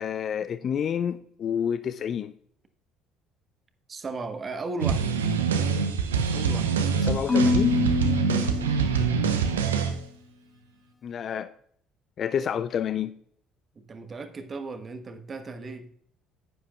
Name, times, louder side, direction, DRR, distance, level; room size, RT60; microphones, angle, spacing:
voice 1, 0.0-2.3 7.0-7.8 11.0-11.5 12.2-13.1, left 8 dB, 45° left, 0.4 m, -29 dB
voice 2, 3.9-5.2 6.3-6.7 8.3-8.6 13.7-15.9, right 3 dB, 35° right, 1.2 m, -36 dB
sound 1, 4.8-10.0, right 6 dB, 80° right, 0.8 m, -25 dB
Marimba xylophone / Wood, 7.3-9.5, left 4 dB, 20° left, 1.8 m, -26 dB
10.0 x 10.0 x 2.3 m
figure-of-eight pair, 55°, 0 cm